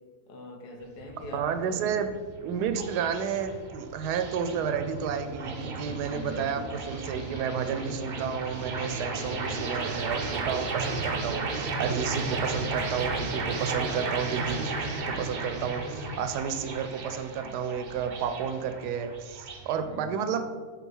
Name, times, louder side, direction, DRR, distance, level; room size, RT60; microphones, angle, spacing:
voice 1, 0.3-2.1 6.1-6.6 9.1-9.8 12.3-12.5 19.9-20.3, left 2 dB, 90° left, 3 dB, 1.4 m, -43 dB
sound 1, 0.8-19.8, right 3 dB, 70° right, 0.4 m, -34 dB
voice 2, 1.3-2.1 2.4-20.4, right 7 dB, 85° right, 8 dB, 1.1 m, -31 dB
sound 2, 5.8-16.2, left 1 dB, 45° left, 0.9 m, -48 dB
5.4 x 3.8 x 4.5 m, 1.5 s
omnidirectional pair, 1.7 m